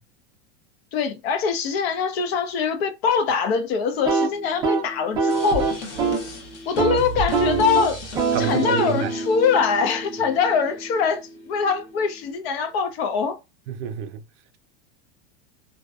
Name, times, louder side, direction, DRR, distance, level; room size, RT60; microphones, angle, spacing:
voice 1, 0.9-5.7 6.7-8.0 8.4-13.4, left 6 dB, 60° left, 0.6 m, -23 dB
sound 1, 3.9-6.3 6.6-7.0 7.3-11.2, right 4 dB, 15° right, 0.4 m, -26 dB
sound 2, 5.3-10.3, right 1 dB, 90° left, 1.0 m, -34 dB
voice 2, 8.3-9.1 13.7-14.2, right 8 dB, 80° right, 0.5 m, -27 dB
2.6 x 2.1 x 2.2 m
supercardioid pair, 155°, 35 cm